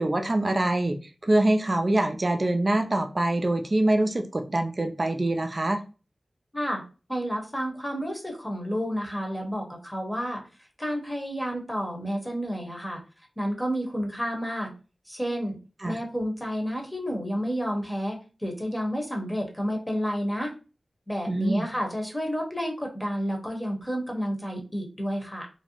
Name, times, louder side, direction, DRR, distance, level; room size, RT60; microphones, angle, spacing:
voice 1, 0.0-5.8 15.8-16.0 21.3-21.7, right 1 dB, 45° right, 0.4 m, -24 dB
voice 2, 7.1-10.4 10.8-13.0 13.4-14.7 15.1-15.6 15.8-20.5 21.1-25.5, equal, 15° left, 0.9 m, -30 dB
2.6 x 2.0 x 2.8 m
cardioid pair, 45°, 0 cm